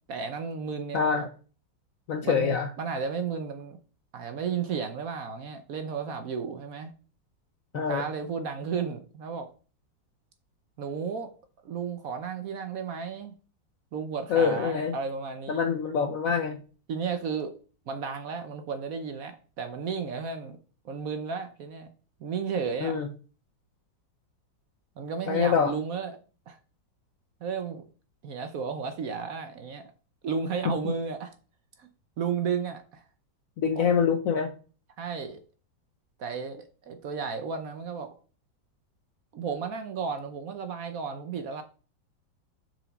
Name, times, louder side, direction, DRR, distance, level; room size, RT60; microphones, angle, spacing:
voice 1, 0.1-1.3 2.2-3.8 4.1-6.9 7.7-9.5 10.8-11.3 11.6-13.3 13.9-15.6 16.9-17.5 17.9-20.6 20.8-21.9 22.2-23.0 25.0-26.2 26.5-26.6 27.4-27.9 28.2-29.8 30.2-31.3 31.8-31.9 32.2-33.0 33.7-33.9 35.0-35.4 36.2-38.2 39.3-41.6, right 6 dB, 60° right, 0.9 m, -33 dB
voice 2, 0.9-1.3 2.1-2.7 7.7-8.0 14.3-14.9 15.5-16.6 22.8-23.1 25.3-25.7 33.6-34.5, left 6 dB, 70° left, 0.8 m, -25 dB
6.1 x 4.9 x 4.0 m
omnidirectional pair, 2.0 m